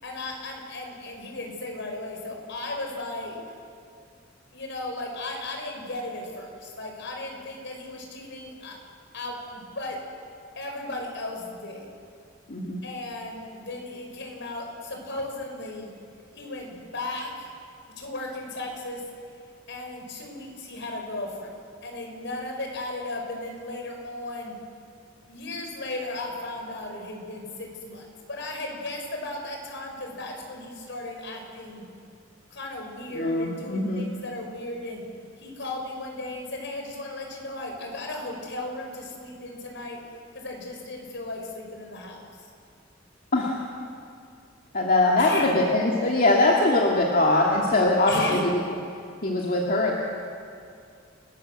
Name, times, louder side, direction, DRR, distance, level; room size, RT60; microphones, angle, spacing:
voice 1, 0.0-3.4 4.5-8.8 9.1-10.0 10.6-11.9 12.8-15.9 16.3-17.5 18.0-19.0 19.7-21.5 21.8-24.6 25.3-31.9 32.5-35.0 35.4-40.0 40.3-42.2 45.2-45.5 48.1-48.4, left 2 dB, 65° left, 2 dB, 5.5 m, -35 dB
voice 2, 12.5-12.8 33.1-34.1 43.3-43.6 44.7-48.6 49.2-50.0, left 2 dB, 45° left, -1 dB, 2.3 m, -22 dB
29.5 x 20.0 x 7.9 m, 2.3 s
head